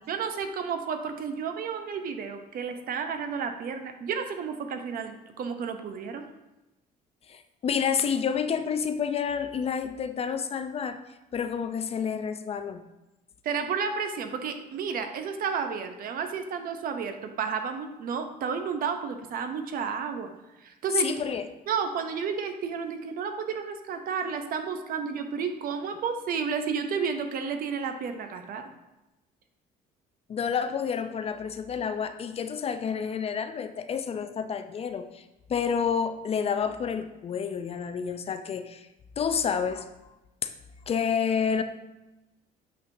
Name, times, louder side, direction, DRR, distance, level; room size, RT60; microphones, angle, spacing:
voice 1, 0.1-6.3 13.4-20.3 20.6-21.1 21.7-28.6, right 6 dB, 60° right, 7 dB, 0.7 m, -31 dB
voice 2, 7.3-11.0 11.3-12.8 21.0-21.5 30.3-35.2 35.5-38.9 39.2-39.9 40.9-41.6, left 7 dB, 35° left, 9 dB, 0.4 m, -29 dB
8.2 x 4.5 x 2.6 m, 0.99 s
cardioid pair, 110°, 17 cm